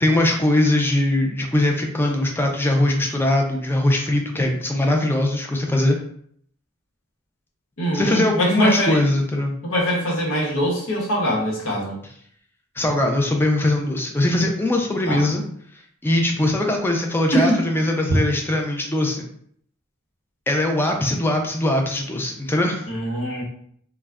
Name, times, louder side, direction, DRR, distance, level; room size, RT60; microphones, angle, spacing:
voice 1, 0.0-6.0 7.9-9.6 12.8-15.5 16.0-19.2 20.5-22.9, left 1 dB, 10° left, 2 dB, 0.3 m, -21 dB
voice 2, 7.8-9.0 9.6-12.0 15.1-15.3 17.3-17.6 22.9-23.4, equal, 80° left, -2 dB, 0.9 m, -23 dB
2.3 x 2.1 x 3.4 m, 0.64 s
head